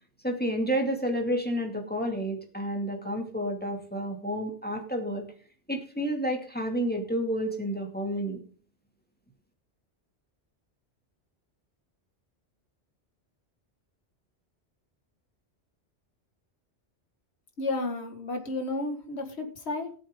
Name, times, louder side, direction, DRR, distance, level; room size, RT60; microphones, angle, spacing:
voice 1, 0.2-5.3 5.7-8.4, equal, 10° left, 2 dB, 2.3 m, -30 dB
voice 2, 17.6-19.9, left 2 dB, 70° left, 5 dB, 2.1 m, -32 dB
18.5 x 7.7 x 3.7 m, 0.42 s
omnidirectional pair, 1.2 m